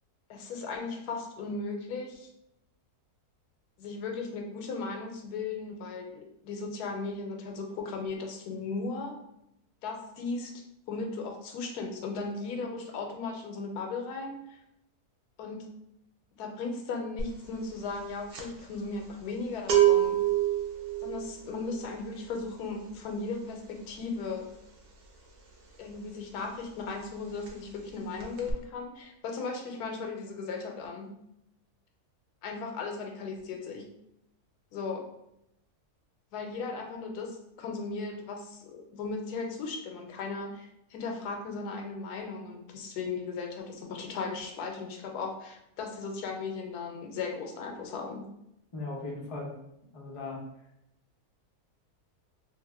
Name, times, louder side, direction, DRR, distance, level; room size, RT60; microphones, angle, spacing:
voice 1, 0.3-2.3 3.8-9.2 9.8-10.5 10.9-14.6 15.4-15.7 16.4-20.2 21.0-24.5 25.8-31.1 32.4-33.9 34.7-35.0 36.3-48.3, left 4 dB, 85° left, 2 dB, 1.1 m, -37 dB
sound 1, 17.2-17.5 17.7-26.3 26.6-26.8 27.0-27.9 28.2-28.5, right 12 dB, 85° right, 0.5 m, -29 dB
voice 2, 48.7-49.5 49.9-50.4, left 3 dB, 55° left, -2 dB, 0.3 m, -37 dB
2.8 x 2.0 x 3.3 m, 0.81 s
omnidirectional pair, 1.7 m